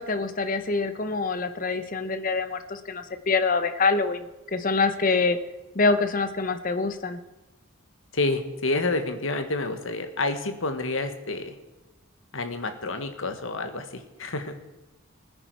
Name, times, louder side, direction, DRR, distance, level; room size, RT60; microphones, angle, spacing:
voice 1, 0.0-4.2 4.5-5.4 5.7-7.2, left 4 dB, 40° left, 9 dB, 0.9 m, -25 dB
voice 2, 8.1-11.5 12.3-14.5, left 2 dB, 65° left, 7 dB, 1.4 m, -29 dB
20.0 x 9.9 x 4.7 m, 1.0 s
head